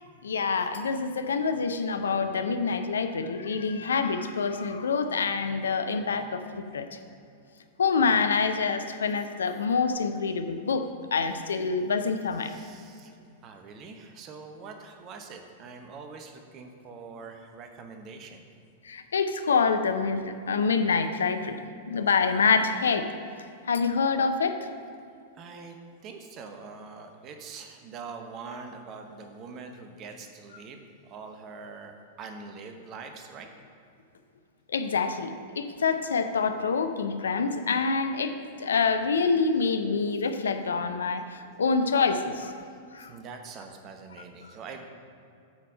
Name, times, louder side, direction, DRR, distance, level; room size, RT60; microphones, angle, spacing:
voice 1, 0.2-6.9 7.8-12.5 18.8-21.6 21.9-23.1 23.7-24.6 34.7-42.5 42.9-43.1, left 5 dB, 75° left, 9 dB, 0.5 m, -26 dB
voice 2, 12.4-13.1 13.4-18.4 25.4-25.8 26.0-33.5 43.1-44.8, right 4 dB, 35° right, 5 dB, 0.8 m, -44 dB
8.5 x 4.3 x 5.4 m, 2.5 s
figure-of-eight pair, 100°, 0 cm